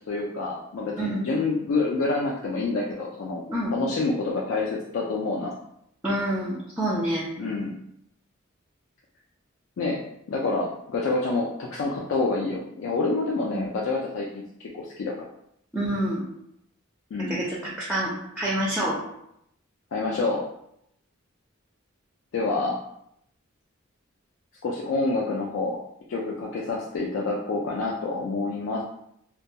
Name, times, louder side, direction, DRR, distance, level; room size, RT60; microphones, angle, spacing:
voice 1, 0.1-3.4 3.7-5.5 7.4-7.7 9.8-10.0 10.3-15.1 17.1-17.4 19.9-20.4 22.3-22.8 24.6-25.8 26.1-28.8, left 3 dB, 75° left, -2 dB, 0.3 m, -27 dB
voice 2, 1.0-1.3 3.5-3.7 6.0-7.3 13.5-13.7 15.7-16.2 17.3-19.0, right 1 dB, 5° right, -5 dB, 0.4 m, -27 dB
2.2 x 2.2 x 2.7 m, 0.76 s
head